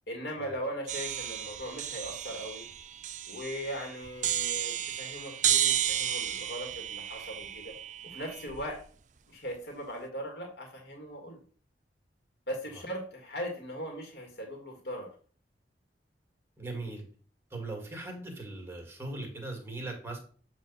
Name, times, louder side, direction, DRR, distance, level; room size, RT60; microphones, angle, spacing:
voice 1, 0.1-2.7 3.2-7.7 8.0-8.8 9.3-11.4 12.5-15.1, equal, 70° left, 2 dB, 2.0 m, -39 dB
sound 1, 0.9-8.8, right 10 dB, 45° right, 0.4 m, -33 dB
voice 2, 16.6-17.0 17.5-20.2, right 2 dB, 15° right, 2 dB, 2.1 m, -39 dB
8.3 x 3.1 x 5.5 m, 0.42 s
head